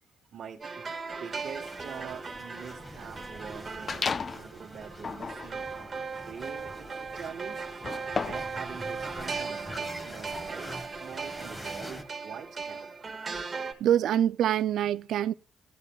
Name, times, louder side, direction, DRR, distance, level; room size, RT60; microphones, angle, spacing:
voice 1, 0.3-0.9 1.2-7.6 8.2-12.9, right 7 dB, 55° right, 1.2 m, -45 dB
sound 1, 0.6-13.7, right 4 dB, 30° right, 1.6 m, -38 dB
sound 2, 1.3-12.0, equal, 15° left, 1.4 m, -45 dB
sound 3, 3.9-4.5 5.0-8.6, left 5 dB, 40° left, 0.3 m, -35 dB
voice 2, 13.5-15.3, right 10 dB, 75° right, 0.3 m, -26 dB
14.5 x 8.2 x 2.3 m
cardioid pair, 90°, 0 cm